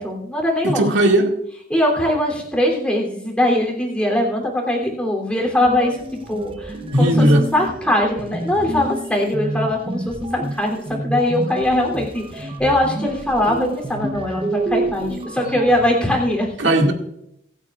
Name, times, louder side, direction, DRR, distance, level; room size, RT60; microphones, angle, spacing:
voice 1, 0.0-0.9 1.7-5.9 6.3-16.5, left 1 dB, 5° left, -1 dB, 3.1 m, -21 dB
voice 2, 0.6-1.3 6.9-7.5 16.6-16.9, right 1 dB, 80° right, 2 dB, 2.1 m, -16 dB
sound 1, 5.6-15.9, right 1 dB, 30° right, 0.9 m, -29 dB
26.0 x 8.9 x 2.5 m, 0.75 s
head